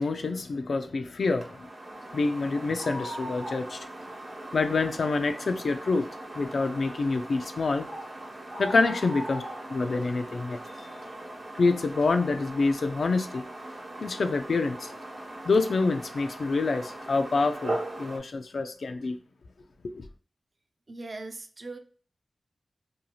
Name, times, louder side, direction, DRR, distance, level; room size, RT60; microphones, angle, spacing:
voice 1, 0.0-1.7 2.1-3.9 4.5-6.1 6.3-7.9 8.6-9.4 9.7-10.9 11.5-13.4 14.0-14.9 15.4-19.2 19.9-20.0, left 3 dB, 85° left, 0.3 m, -27 dB
sound 1, 1.2-18.2, right 1 dB, 75° right, 0.9 m, -39 dB
voice 2, 20.9-21.8, right 2 dB, 55° right, 0.4 m, -39 dB
2.7 x 2.3 x 2.9 m
wide cardioid pair, 100°, 0 cm